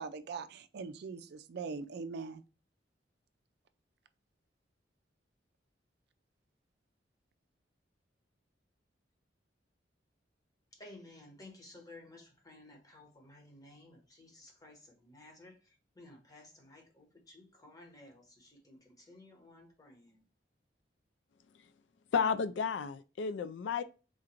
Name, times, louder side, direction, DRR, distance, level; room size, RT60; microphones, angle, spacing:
voice 1, 0.0-2.4, right 4 dB, 65° right, 0.4 m, -41 dB
voice 2, 10.7-15.6 15.9-20.2, left 2 dB, 20° left, 1.1 m, -55 dB
voice 3, 22.1-23.8, left 6 dB, 75° left, 0.3 m, -32 dB
3.8 x 2.5 x 4.3 m
head